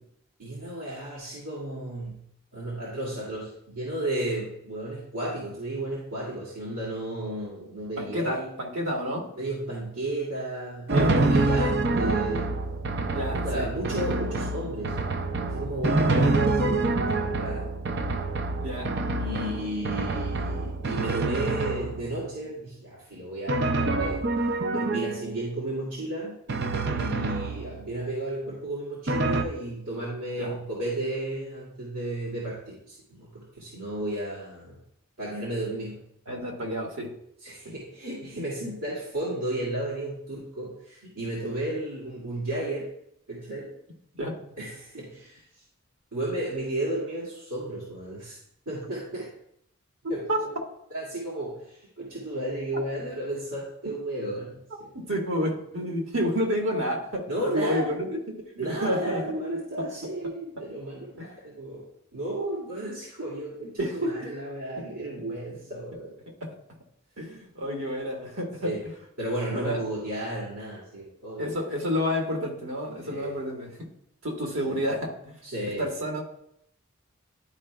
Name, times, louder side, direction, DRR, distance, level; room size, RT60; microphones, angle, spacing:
voice 1, 0.4-2.2 2.5-8.5 9.3-12.5 13.3-15.0 15.5-17.7 19.1-24.2 24.7-26.4 26.9-34.8 35.2-36.0 37.4-42.9 43.3-43.7 44.6-45.4 46.1-48.4 48.7-49.3 50.1-50.5 50.9-54.9 57.3-57.9 58.6-61.9 62.1-66.1 68.6-68.8 69.2-71.5 73.0-73.3 74.6-74.8 75.4-75.8, right 1 dB, 85° right, -7 dB, 2.0 m, -33 dB
voice 2, 8.0-9.3 10.9-11.1 13.1-13.7 16.2-16.3 18.6-18.9 19.3-19.4 30.4-30.6 36.3-37.1 37.6-37.7 44.2-44.4 50.0-50.4 54.9-59.2 59.8-59.9 61.2-61.3 63.8-64.1 66.4-66.6 67.2-68.7 69.5-69.8 71.4-73.9 74.2-75.4 75.8-76.2, equal, 65° right, 0 dB, 1.5 m, -30 dB
Drum, 10.9-22.3 23.5-25.4 26.5-28.0 29.1-29.4, right 2 dB, 50° right, 0.5 m, -26 dB
11.5 x 4.8 x 2.2 m, 0.74 s
head